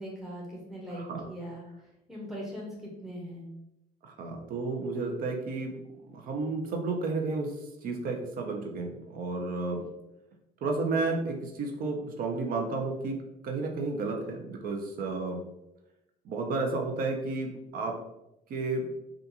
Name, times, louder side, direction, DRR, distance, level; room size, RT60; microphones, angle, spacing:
voice 1, 0.0-1.6 2.1-3.5, equal, ahead, -3 dB, 0.6 m, -40 dB
voice 2, 0.9-1.2 4.0-5.8 6.1-7.5 7.8-9.9 10.6-13.2 13.4-15.4 16.2-18.0 18.5-18.9, right 3 dB, 60° right, 2 dB, 0.6 m, -32 dB
2.4 x 2.3 x 2.7 m, 0.89 s
cardioid pair, 110°, 17 cm